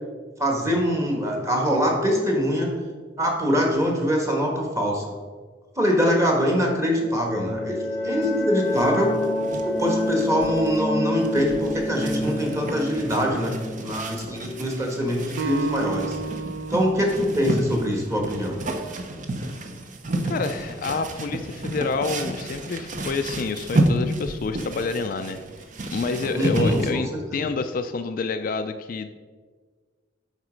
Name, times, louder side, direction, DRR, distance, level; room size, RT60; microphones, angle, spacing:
voice 1, 0.4-2.7 3.2-5.0 5.8-7.8 8.0-9.1 9.6-13.5 13.8-16.2 16.7-18.6 26.3-27.0 27.3-27.5, equal, 15° right, 0 dB, 1.4 m, -23 dB
sound 1, 7.0-15.5, left 1 dB, 10° left, 0.8 m, -29 dB
sound 2, 8.2-26.9, right 1 dB, 40° right, 0.7 m, -31 dB
Acoustic guitar, 15.4-18.7, right 4 dB, 75° right, 0.7 m, -33 dB
voice 2, 20.2-25.4 25.9-29.1, left 4 dB, 45° left, 8 dB, 0.3 m, -28 dB
9.4 x 4.1 x 5.0 m, 1.5 s
head